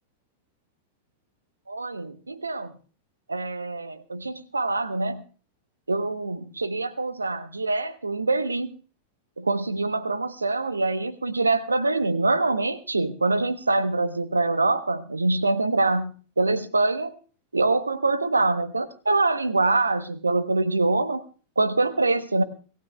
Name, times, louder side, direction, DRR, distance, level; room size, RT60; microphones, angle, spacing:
voice 1, 1.7-2.7 3.3-5.2 5.9-8.7 9.4-16.1 16.4-17.2 17.5-21.2 21.6-22.4, right 3 dB, 80° right, 15 dB, 0.9 m, -24 dB
26.0 x 15.5 x 2.3 m, 0.38 s
figure-of-eight pair, 90°, 0 cm